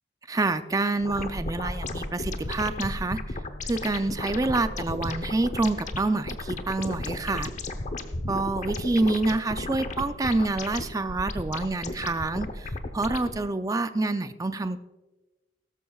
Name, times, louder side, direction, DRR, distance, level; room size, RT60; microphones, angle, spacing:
voice 1, 0.3-3.2 3.7-7.5 8.3-14.8, right 2 dB, 20° right, 10 dB, 0.5 m, -27 dB
sound 1, 1.0-13.4, left 1 dB, 65° left, 3.7 m, -51 dB
sound 2, 1.0-13.4, left 2 dB, 40° left, 0.8 m, -34 dB
17.0 x 13.5 x 2.4 m, 1.1 s
head